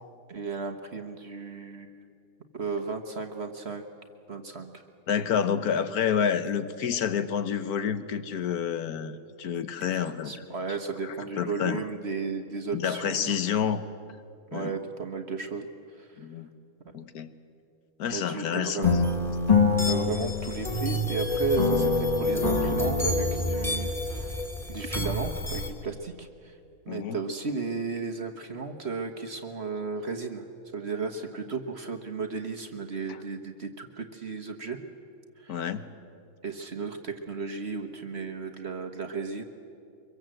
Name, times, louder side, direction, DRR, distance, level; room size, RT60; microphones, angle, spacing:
voice 1, 0.3-2.0 2.5-3.8 4.3-4.8 9.8-13.3 14.5-15.7 16.0-16.1 18.1-19.1 19.9-24.4 24.7-26.6 26.8-30.4 30.7-34.8 35.4-35.7 36.4-39.4, right 4 dB, 45° right, 4 dB, 1.5 m, -34 dB
voice 2, 5.1-10.3 11.0-11.8 12.7-13.8 14.5-14.7 16.2-16.5 16.9-17.3 18.0-18.9 26.9-27.2 33.1-33.2 35.5-35.9, left 8 dB, 70° left, 11 dB, 1.5 m, -29 dB
sound 1, 18.8-21.2 21.6-23.8, left 5 dB, 25° left, 1.3 m, -26 dB
sound 2, 18.8-25.7, left 1 dB, ahead, 2.5 m, -30 dB
24.0 x 23.0 x 7.8 m, 2.5 s
omnidirectional pair, 1.7 m